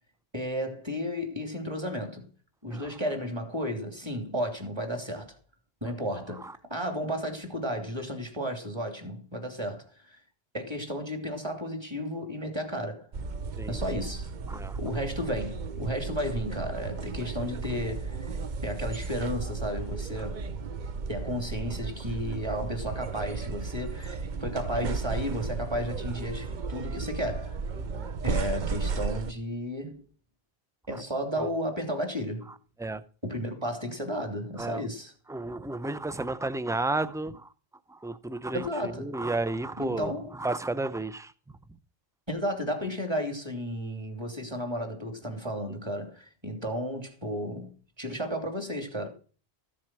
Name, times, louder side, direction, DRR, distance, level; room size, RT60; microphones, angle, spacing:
voice 1, 0.3-2.3 2.6-5.4 5.8-10.2 10.5-13.1 13.7-14.3 14.8-18.2 18.6-20.4 21.1-27.6 28.2-30.0 30.9-32.5 33.2-35.1 38.5-39.1 39.8-40.3 42.3-47.7 48.0-49.1, equal, 25° right, 3.0 m, -33 dB
sound 1, 13.1-29.3, right 4 dB, 50° right, 0.8 m, -34 dB
voice 2, 14.5-14.8 27.8-27.9 32.8-33.0 34.6-34.9 35.3-37.5 37.9-41.3, right 2 dB, 5° right, 0.4 m, -32 dB
14.5 x 7.5 x 6.2 m
omnidirectional pair, 1.1 m